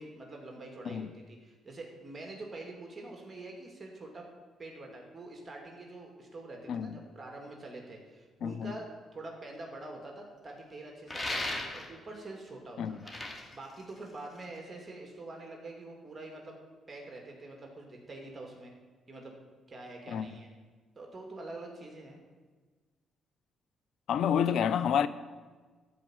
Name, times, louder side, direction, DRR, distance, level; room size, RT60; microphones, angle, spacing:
voice 1, 0.0-4.3 4.6-13.1 13.5-16.6 16.9-18.7 19.1-19.3 19.7-20.5 21.0-22.2, right 2 dB, 25° right, 2.6 m, -45 dB
voice 2, 8.4-8.7 12.8-13.0 20.1-20.4 24.1-25.1, left 8 dB, 70° left, 0.6 m, -29 dB
sound 1, 11.1-12.1 12.9-14.6, left 1 dB, 25° left, 2.2 m, -37 dB
13.5 x 5.1 x 8.9 m
cardioid pair, 90°, 0 cm